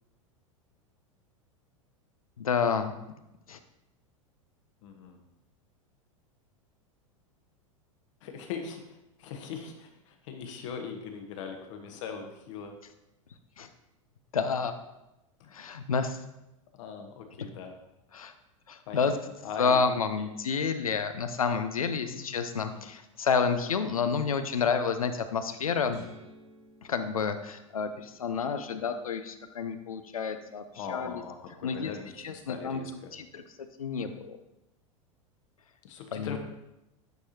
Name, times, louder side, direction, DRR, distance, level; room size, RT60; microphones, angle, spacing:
voice 1, 2.4-2.9 3.5-3.6 13.6-13.7 14.3-14.7 15.5-16.2 18.1-18.3 18.7-19.1 19.6-26.0 26.8-30.6 30.9-31.2 31.6-31.9 32.2-32.8 33.1-34.4 36.1-36.4, left 5 dB, 90° left, 9 dB, 0.6 m, -29 dB
voice 2, 4.8-5.2 8.2-12.8 15.4-15.5 16.8-17.7 18.9-19.2 19.4-19.9 20.2-20.4 21.9-22.9 30.7-33.1 34.0-34.1 35.8-36.4, left 6 dB, 65° left, 4 dB, 1.1 m, -41 dB
sound 1, 25.9-28.3, right 2 dB, 60° right, 1.9 m, -53 dB
9.1 x 4.8 x 2.8 m, 0.92 s
hypercardioid pair, 95°, 18 cm